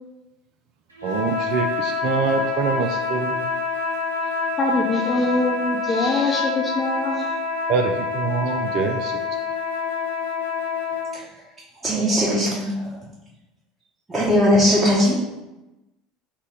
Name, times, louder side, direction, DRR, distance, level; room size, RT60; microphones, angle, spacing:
voice 1, 1.0-3.5 7.7-9.1, right 5 dB, 50° right, 3 dB, 0.3 m, -25 dB
sound 1, 1.0-11.2, left 4 dB, 85° right, 0.8 m, -26 dB
voice 2, 4.6-7.3, left 2 dB, 20° left, 0 dB, 0.5 m, -23 dB
voice 3, 11.8-12.9 14.1-15.2, equal, 15° right, -8 dB, 1.0 m, -19 dB
3.3 x 2.9 x 4.7 m, 1.0 s
figure-of-eight pair, 70°, 0 cm